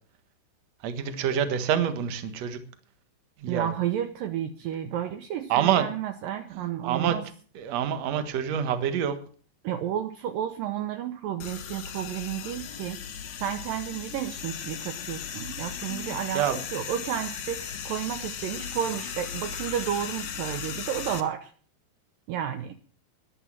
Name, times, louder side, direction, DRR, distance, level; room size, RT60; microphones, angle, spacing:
voice 1, 0.8-2.6 3.4-3.7 5.5-5.9 6.5-7.2 7.6-9.2 16.3-16.6, right 9 dB, 60° right, 10 dB, 1.8 m, -26 dB
voice 2, 3.5-7.2 9.6-13.0 13.4-21.5 22.3-22.8, right 10 dB, 85° right, 8 dB, 2.0 m, -32 dB
sound 1, 11.4-21.2, left 8 dB, 60° left, 2.0 m, -37 dB
12.5 x 11.0 x 7.5 m, 0.44 s
omnidirectional pair, 5.2 m